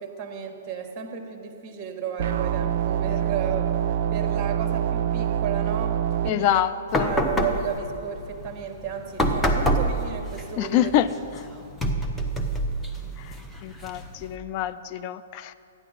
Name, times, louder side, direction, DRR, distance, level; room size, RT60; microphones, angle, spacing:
voice 1, 0.0-3.8 4.1-6.6 7.0-10.9 11.6-11.7, right 7 dB, 25° right, 4 dB, 1.3 m, -33 dB
sound 1, 2.2-6.3, right 10 dB, 50° right, 0.4 m, -25 dB
voice 2, 6.3-7.1 10.6-11.1 11.4-11.5 13.2-13.3 13.6-15.5, left 12 dB, 40° left, 12 dB, 0.4 m, -26 dB
sound 2, 6.9-14.4, right 1 dB, 10° left, 0.9 m, -28 dB
13.5 x 9.7 x 4.0 m, 2.7 s
figure-of-eight pair, 120°, 0 cm